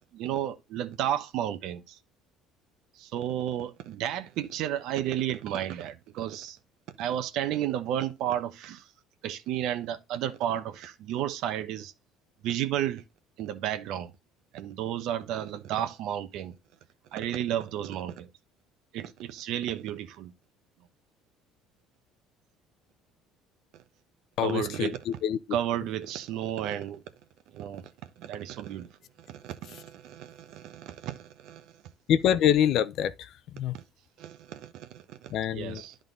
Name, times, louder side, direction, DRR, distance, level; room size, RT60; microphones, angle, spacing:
voice 1, 0.1-2.0 3.0-6.6 7.0-8.9 9.2-11.9 12.4-13.0 13.4-14.1 14.5-16.5 17.1-18.3 18.9-20.3 24.4-25.0 25.5-27.0 27.5-28.9 29.2-31.8 33.7-33.8 34.2-36.0, right 11 dB, 70° right, 1.0 m, -32 dB
voice 2, 24.4-24.9 25.2-25.4 32.1-33.1 33.5-33.7 35.3-35.8, left 10 dB, 60° left, 0.6 m, -24 dB
11.0 x 3.9 x 3.9 m
cardioid pair, 120°, 0 cm